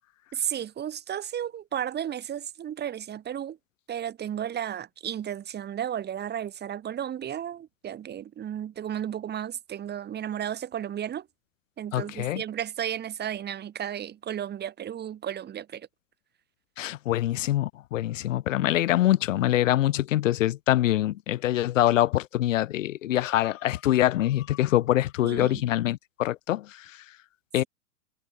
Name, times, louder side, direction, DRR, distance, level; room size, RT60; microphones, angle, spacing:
voice 1, 0.3-3.6 3.9-11.3 11.8-15.9 25.2-25.6, right 10 dB, 20° right, 6.2 m, -33 dB
voice 2, 11.9-12.4 16.8-26.6 27.5-27.6, left 14 dB, 60° left, 2.3 m, -24 dB
hypercardioid pair, 115°, 44 cm